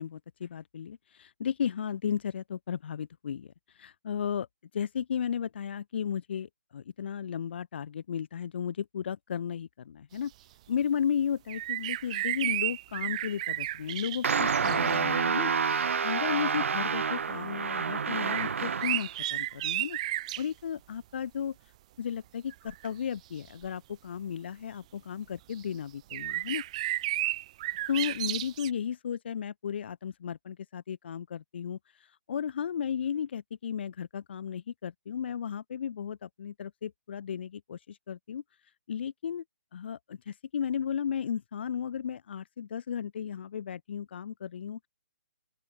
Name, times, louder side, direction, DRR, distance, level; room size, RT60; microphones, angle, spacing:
voice 1, 0.0-4.5 4.7-10.3 10.7-15.5 15.8-20.0 20.4-21.6 22.0-26.6 27.9-38.4 38.9-39.4 39.7-44.9, left 8 dB, 45° left, 1.6 m, -34 dB
sound 1, 11.5-15.0 15.7-15.8 18.2-20.5 22.5-22.9 23.6-23.7 25.5-25.6 26.1-28.7, right 15 dB, 25° right, 1.3 m, -33 dB
sound 2, 14.2-19.1, right 6 dB, 60° right, 2.5 m, -28 dB
open air
hypercardioid pair, 160°, 8 cm